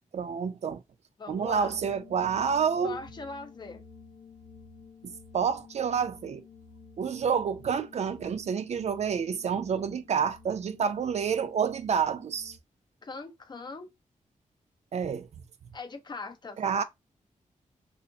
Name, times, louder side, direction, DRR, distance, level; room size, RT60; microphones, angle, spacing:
voice 1, 0.1-0.8 1.3-3.0 5.3-6.4 7.0-12.6 14.9-15.3 16.6-16.8, right 6 dB, 55° right, 0.4 m, -28 dB
voice 2, 1.2-1.7 2.8-3.8 13.0-13.9 15.7-16.6, left 3 dB, 35° left, 0.6 m, -40 dB
sound 1, 1.5-12.6, left 4 dB, 70° left, 0.9 m, -52 dB
2.8 x 2.5 x 3.7 m
wide cardioid pair, 150°, 13 cm